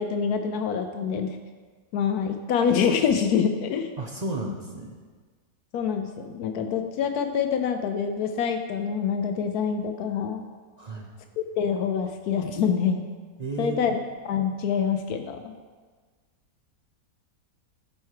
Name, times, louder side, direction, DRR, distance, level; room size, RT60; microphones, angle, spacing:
voice 1, 0.0-1.4 1.9-3.9 5.7-10.4 11.4-13.1 13.6-13.9 14.2-15.5, left 7 dB, 80° left, 7 dB, 1.1 m, -26 dB
voice 2, 4.0-5.0 10.8-11.1 13.4-14.0, right 2 dB, 35° right, 0 dB, 0.7 m, -33 dB
11.5 x 4.5 x 4.8 m, 1.4 s
omnidirectional pair, 1.6 m